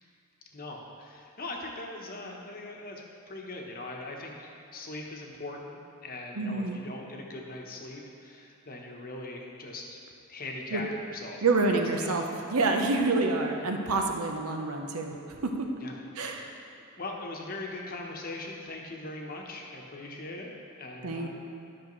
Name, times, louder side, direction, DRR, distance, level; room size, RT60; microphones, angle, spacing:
voice 1, 0.5-10.0 10.3-11.4 11.7-12.1 13.9-14.0 15.8-16.0 16.2-16.6 17.0-20.5 20.8-21.3, left 2 dB, 40° left, 0 dB, 1.0 m, -41 dB
voice 2, 6.4-6.8 10.7-10.9 11.4-15.1 15.4-15.5 16.2-16.5 21.0-21.3, right 3 dB, 85° right, 3 dB, 0.8 m, -27 dB
12.0 x 6.3 x 3.1 m, 2.7 s
head